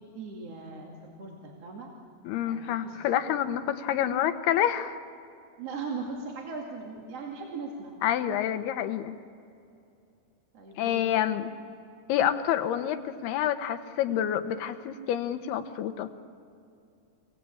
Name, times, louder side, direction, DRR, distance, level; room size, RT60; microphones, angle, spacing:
voice 1, 0.0-1.9 2.4-3.0 5.6-7.9 10.5-11.1, right 4 dB, 45° right, -1 dB, 3.0 m, -39 dB
voice 2, 2.2-5.0 8.0-9.1 10.8-11.5 12.1-16.1, left 10 dB, 85° left, 9 dB, 3.0 m, -28 dB
28.5 x 18.5 x 8.6 m, 2.5 s
omnidirectional pair, 4.5 m